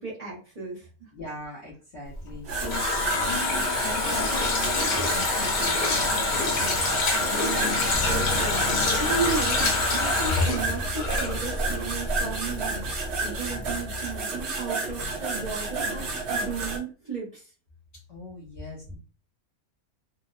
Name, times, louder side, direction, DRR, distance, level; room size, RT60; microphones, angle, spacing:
voice 1, 0.0-1.1 7.2-17.5, right 5 dB, 30° right, -7 dB, 0.9 m, -35 dB
voice 2, 1.1-6.7 18.1-19.0, left 2 dB, 45° left, -6 dB, 0.9 m, -40 dB
Water tap faucet, 2.2-11.8 12.1-12.2, left 3 dB, 75° left, 1.4 m, -26 dB
sound 1, 2.5-16.8, right 3 dB, 60° right, 0.8 m, -31 dB
Bass guitar, 7.9-14.2, left 3 dB, 20° left, 0.5 m, -37 dB
2.9 x 2.0 x 2.4 m, 0.35 s
omnidirectional pair, 1.6 m